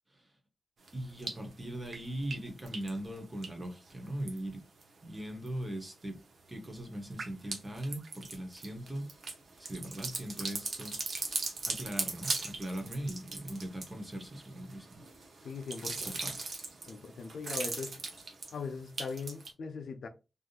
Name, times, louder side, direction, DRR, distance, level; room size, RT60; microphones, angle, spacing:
voice 1, 0.9-4.6 5.0-6.2 6.5-9.0 9.6-11.0 11.7-15.0 15.8-16.5, right 1 dB, 20° right, 1.0 m, -40 dB
sound 1, 0.9-1.5 1.9-4.8 5.2-5.8 6.1-19.5, right 3 dB, 65° right, 0.8 m, -40 dB
voice 2, 15.4-16.2 16.9-17.9 18.5-20.1, left 5 dB, 85° left, 0.5 m, -40 dB
3.5 x 2.6 x 2.4 m
wide cardioid pair, 125°, 0 cm